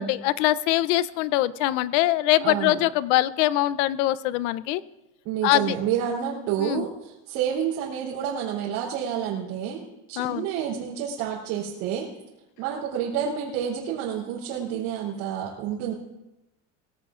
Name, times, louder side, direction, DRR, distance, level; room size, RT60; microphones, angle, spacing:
voice 1, 0.0-4.8 5.4-5.8 6.6-6.8 10.2-10.5, left 15 dB, 90° left, 17 dB, 0.7 m, -23 dB
voice 2, 2.4-2.8 5.3-12.1 12.6-15.9, right 9 dB, 75° right, -5 dB, 3.5 m, -29 dB
21.5 x 16.0 x 2.5 m, 0.93 s
cardioid pair, 155°, 36 cm